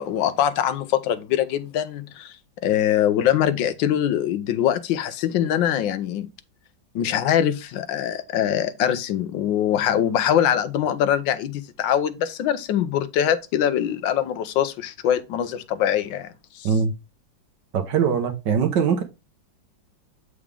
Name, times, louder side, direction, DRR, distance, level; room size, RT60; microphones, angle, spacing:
voice 1, 0.0-2.3 2.6-6.3 6.9-16.7, left 10 dB, 80° left, 1.4 m, -23 dB
voice 2, 17.7-19.0, right 6 dB, 70° right, 1.7 m, -21 dB
7.2 x 4.8 x 3.4 m
omnidirectional pair, 2.1 m